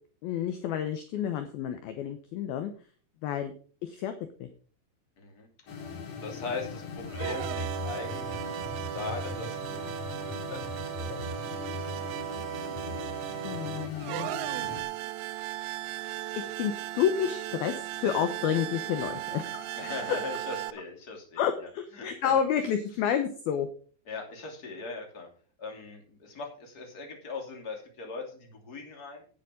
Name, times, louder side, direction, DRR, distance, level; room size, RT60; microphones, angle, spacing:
voice 1, 0.2-2.7 3.2-3.5 3.8-4.1 4.4-4.5 13.4-14.3 16.0-19.9 21.4-23.7, left 9 dB, 75° left, 8 dB, 2.3 m, -30 dB
voice 2, 5.2-5.5 6.2-8.6 8.9-11.2 19.7-21.5 21.9-22.3 24.1-25.3 25.6-29.2, left 4 dB, 25° left, 2 dB, 2.5 m, -40 dB
sound 1, 5.7-14.8, left 4 dB, 50° left, 2.2 m, -39 dB
sound 2, 7.0-20.7, right 16 dB, 85° right, 2.3 m, -36 dB
10.5 x 9.3 x 5.1 m, 0.43 s
omnidirectional pair, 5.3 m